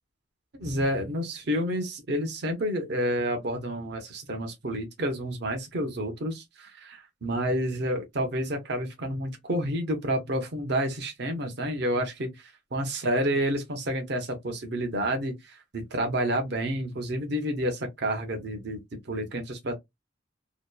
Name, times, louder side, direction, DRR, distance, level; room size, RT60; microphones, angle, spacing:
voice 1, 0.6-18.8 19.1-19.7, equal, 55° right, 0.7 m, -29 dB
2.8 x 2.1 x 2.2 m
head